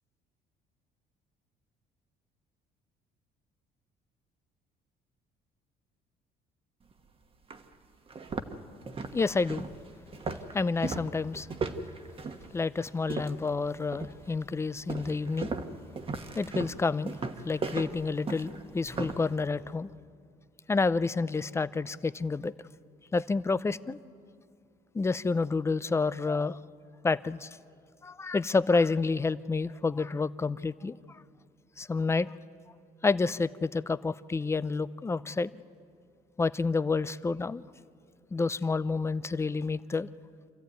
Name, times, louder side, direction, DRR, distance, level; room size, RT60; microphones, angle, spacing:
sound 1, 6.9-7.0 7.5-7.6 8.1-13.5 13.9-14.3 14.9-19.3, right 4 dB, 35° right, 1.3 m, -37 dB
voice 1, 9.1-9.7 10.5-11.5 12.5-15.5 16.3-19.9 20.7-22.5 23.1-24.0 24.9-26.6 27.0-27.5 28.0-31.2 31.8-32.3 33.0-35.5 36.4-37.7 38.3-40.1, left 4 dB, 15° left, 16 dB, 0.5 m, -29 dB
26.5 x 14.0 x 9.3 m, 2.3 s
cardioid pair, 110°, 17 cm